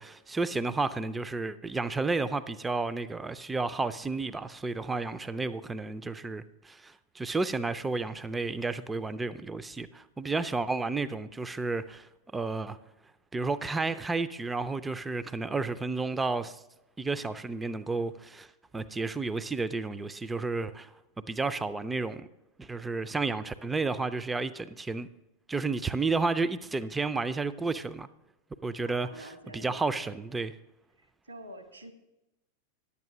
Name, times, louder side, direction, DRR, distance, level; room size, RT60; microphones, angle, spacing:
voice 1, 0.0-12.8 13.3-16.6 17.0-18.5 18.7-20.9 21.3-22.3 22.6-25.1 25.5-28.1 28.6-29.3 29.5-30.5, right 3 dB, 10° right, 0.5 m, -32 dB
voice 2, 28.8-30.1 31.0-31.9, right 1 dB, 80° right, 1.6 m, -48 dB
10.5 x 8.5 x 6.1 m
figure-of-eight pair, 90°, 0 cm